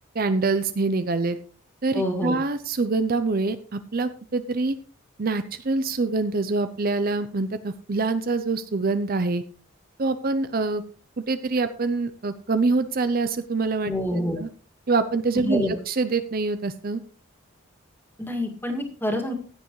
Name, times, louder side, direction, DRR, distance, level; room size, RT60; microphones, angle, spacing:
voice 1, 0.1-1.4 1.8-4.8 5.2-9.4 10.0-10.8 11.2-13.9 14.4-14.5 14.9-17.0, right 3 dB, 45° right, 11 dB, 0.6 m, -25 dB
voice 2, 1.9-2.4 13.8-14.4 15.3-15.7 18.2-19.3, left 1 dB, 10° left, 2 dB, 2.1 m, -27 dB
16.0 x 9.5 x 3.1 m, 0.41 s
head